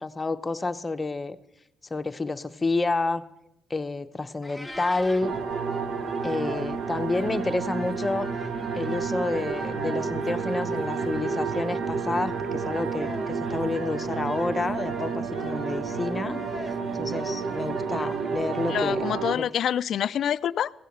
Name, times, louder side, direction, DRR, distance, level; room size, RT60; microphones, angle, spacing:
voice 1, 0.0-1.4 1.9-3.2 3.7-5.3 6.2-8.3 8.7-16.4 16.9-19.0 19.3-19.4, left 3 dB, 25° left, 0.7 m, -29 dB
Meow, 4.4-5.3, left 1 dB, ahead, 1.4 m, -40 dB
sound 1, 4.6-18.9, equal, 20° right, 2.7 m, -42 dB
sound 2, 5.2-19.4, right 5 dB, 75° right, 0.9 m, -30 dB
voice 2, 18.7-20.7, left 9 dB, 65° left, 0.4 m, -26 dB
16.0 x 6.6 x 7.8 m
cardioid pair, 90°, 0 cm